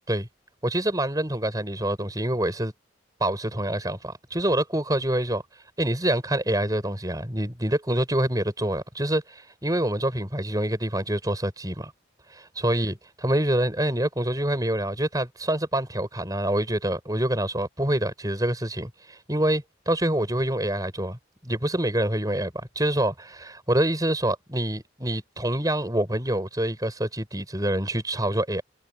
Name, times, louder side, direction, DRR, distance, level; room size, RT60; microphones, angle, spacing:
voice 1, 0.6-2.7 3.2-5.4 5.8-11.9 12.3-12.9 13.2-21.2 21.4-28.6, right 1 dB, 20° right, 5.0 m, -26 dB
head